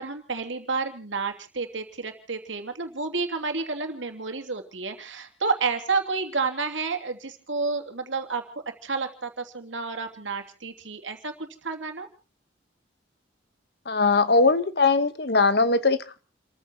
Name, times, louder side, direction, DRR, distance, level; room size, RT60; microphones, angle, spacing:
voice 1, 0.0-12.1, right 4 dB, 85° right, 5 dB, 2.8 m, -30 dB
voice 2, 13.9-16.2, left 3 dB, 55° left, 13 dB, 1.2 m, -21 dB
29.5 x 14.5 x 3.0 m, 0.35 s
head